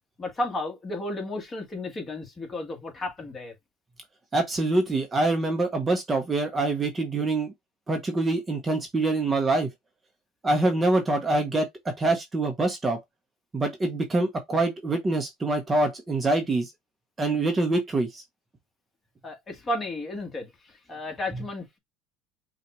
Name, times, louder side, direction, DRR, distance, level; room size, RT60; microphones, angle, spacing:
voice 1, 0.2-3.5 19.2-21.8, left 1 dB, 20° left, 1.6 m, -33 dB
voice 2, 4.3-7.5 7.9-9.7 10.4-13.0 13.5-16.7 17.2-18.2, right 2 dB, 20° right, 0.8 m, -25 dB
5.6 x 2.4 x 3.0 m
supercardioid pair, 125°, 0 cm